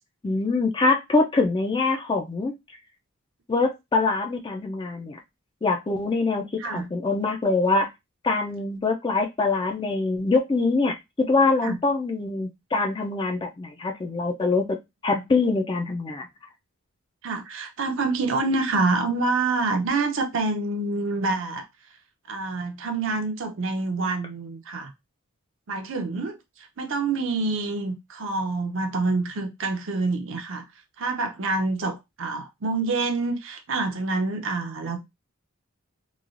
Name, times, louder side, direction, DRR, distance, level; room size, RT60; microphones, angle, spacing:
voice 1, 0.2-2.5 3.5-5.2 5.6-7.9 8.2-11.0 11.3-14.8 15.0-16.3, left 3 dB, 20° left, 0.3 m, -24 dB
voice 2, 17.2-21.7 22.3-24.9 25.7-30.6 31.0-35.0, right 3 dB, 55° right, 0.5 m, -27 dB
3.1 x 2.3 x 2.4 m
head